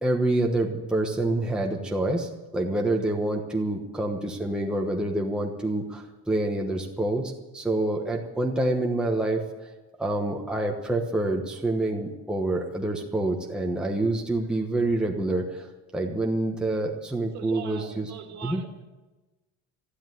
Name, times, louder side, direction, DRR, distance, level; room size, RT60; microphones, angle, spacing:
voice 1, 0.0-9.4 10.0-15.7 15.9-18.1 18.4-18.6, right 2 dB, ahead, 0 dB, 1.1 m, -27 dB
voice 2, 17.3-18.8, right 8 dB, 55° right, 5 dB, 2.0 m, -41 dB
13.0 x 11.0 x 9.2 m, 1.1 s
cardioid pair, 165°, 34 cm